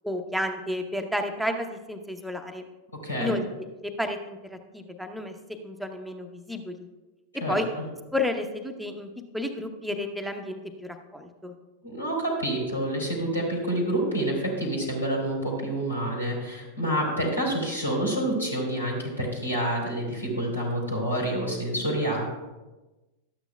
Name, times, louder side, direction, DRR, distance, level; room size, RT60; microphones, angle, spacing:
voice 1, 0.0-2.7 3.2-3.4 3.8-6.9 7.3-7.7 8.1-9.1 9.3-11.5, left 1 dB, ahead, 4 dB, 0.8 m, -31 dB
voice 2, 3.0-3.4 7.4-7.5 11.8-22.3, right 1 dB, 85° left, -3 dB, 2.9 m, -28 dB
12.5 x 9.0 x 2.3 m, 1.1 s
figure-of-eight pair, 90°, 0 cm